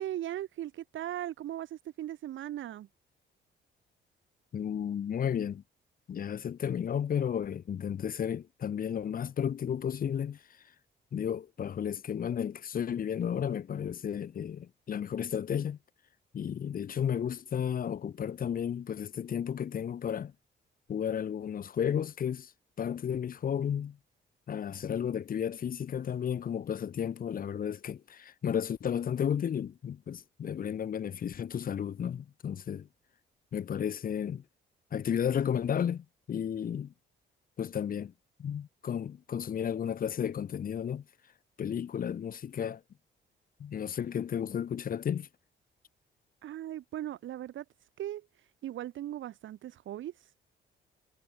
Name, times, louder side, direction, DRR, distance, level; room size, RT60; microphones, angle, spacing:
voice 1, 0.0-2.9 46.4-47.6 48.0-50.4, right 12 dB, 75° right, 2.6 m, -38 dB
voice 2, 4.5-5.6 6.1-10.4 11.1-15.8 16.3-20.3 20.9-22.5 22.8-24.0 24.5-32.9 33.5-34.4 34.9-36.9 37.6-38.1 38.4-41.0 41.6-42.8 43.6-45.3, left 8 dB, 45° left, 0.8 m, -33 dB
cardioid pair, 90°, 20 cm